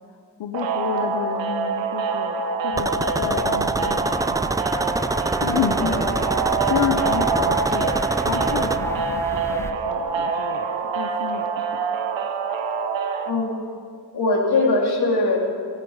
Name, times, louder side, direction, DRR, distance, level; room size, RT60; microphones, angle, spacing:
voice 1, 0.4-4.5 5.4-5.9 6.7-11.6, left 8 dB, 90° left, 5 dB, 0.9 m, -30 dB
sound 1, 0.5-13.3, right 5 dB, 90° right, 1.0 m, -25 dB
sound 2, 2.7-9.7, left 1 dB, 5° left, 0.9 m, -35 dB
sound 3, 2.8-8.8, right 2 dB, 10° right, 0.4 m, -26 dB
voice 2, 6.8-7.5 13.3-13.6 14.1-15.4, left 3 dB, 60° left, -1 dB, 3.3 m, -22 dB
16.5 x 15.0 x 4.9 m, 2.2 s
cardioid pair, 70°, 43 cm